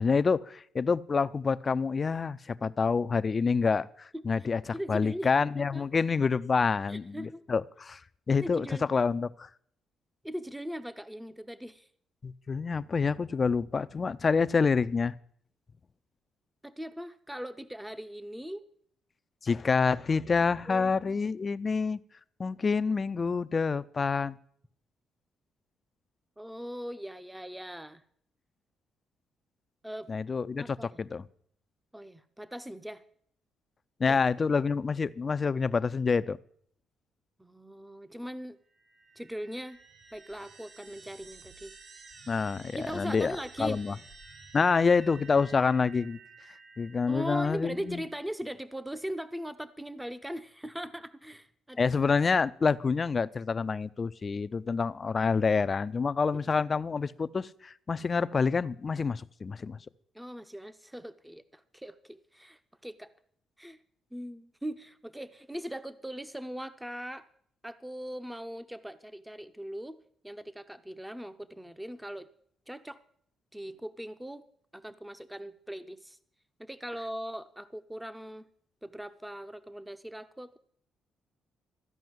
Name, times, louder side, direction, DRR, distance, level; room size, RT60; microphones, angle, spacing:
voice 1, 0.0-4.6 4.9-8.0 8.3-9.5 12.2-15.1 19.4-22.0 22.4-24.4 30.1-31.2 34.0-36.4 42.3-44.0 44.5-46.2 46.8-48.0 51.8-59.8, left 5 dB, 35° left, 0.4 m, -27 dB
voice 2, 4.7-5.8 6.9-7.4 8.4-8.9 10.2-11.9 16.6-18.6 20.7-21.2 26.4-28.0 29.8-30.1 30.6-31.1 31.9-33.0 34.1-34.2 37.4-38.6 39.2-39.8 40.1-41.8 42.8-43.8 47.1-51.9 56.5-56.6 60.1-63.1 63.6-63.8 64.1-67.3 67.6-70.0 70.2-72.3 72.7-73.0 73.5-74.4 74.7-76.2 76.6-78.4 78.8-80.6, equal, 5° right, 0.6 m, -40 dB
sound 1, 38.7-48.0, right 4 dB, 55° right, 1.3 m, -52 dB
13.5 x 5.5 x 9.3 m
cardioid pair, 90°, 0 cm